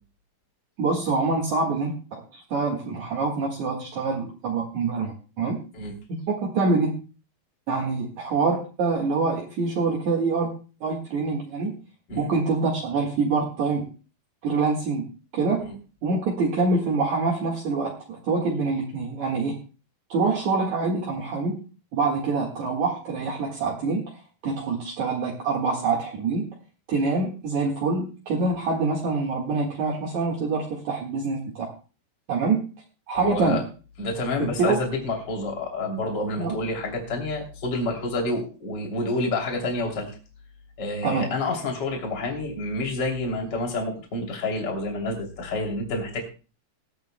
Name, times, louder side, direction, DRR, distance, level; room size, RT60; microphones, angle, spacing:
voice 1, 0.8-5.6 6.1-6.2 6.5-7.0 7.7-10.5 10.8-11.8 12.2-13.9 14.4-15.7 16.0-19.6 20.1-21.6 21.9-24.1 24.4-26.5 26.9-31.7 32.3-32.7 33.1-33.6 34.4-34.8 36.4-36.5 41.0-41.3, right 4 dB, 60° right, -2 dB, 2.9 m, -25 dB
voice 2, 33.1-33.6 34.0-40.1 40.8-46.2, left 2 dB, 30° left, 1 dB, 3.3 m, -28 dB
20.0 x 13.5 x 2.2 m, 0.35 s
omnidirectional pair, 4.0 m